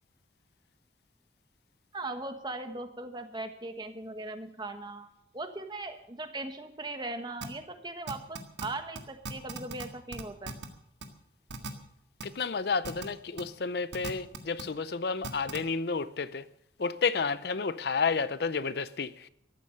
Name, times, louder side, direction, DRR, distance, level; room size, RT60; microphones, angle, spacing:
voice 1, 1.9-5.1 5.3-10.5, right 2 dB, 25° right, 1.3 m, -39 dB
sound 1, 7.4-7.5 8.1-8.7 8.9-9.0 9.2-9.8 10.1-10.7 11.0-11.1 11.5-11.7 12.2-12.3 12.8-13.0 13.4-13.5 13.9-14.6 15.2-15.6, right 4 dB, 85° right, 1.7 m, -37 dB
voice 2, 12.2-16.5 16.8-19.3, left 5 dB, 60° left, 0.5 m, -31 dB
14.0 x 11.5 x 6.5 m
head